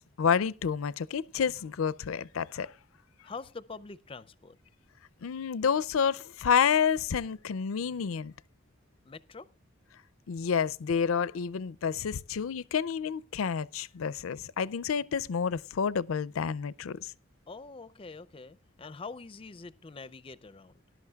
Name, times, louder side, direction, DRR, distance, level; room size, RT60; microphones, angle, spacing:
voice 1, 0.2-2.7 5.2-8.3 10.3-17.1, left 7 dB, 90° left, 0.4 m, -29 dB
voice 2, 3.2-4.6 9.0-9.5 17.5-20.8, left 4 dB, 25° left, 0.5 m, -45 dB
19.0 x 11.5 x 2.3 m
head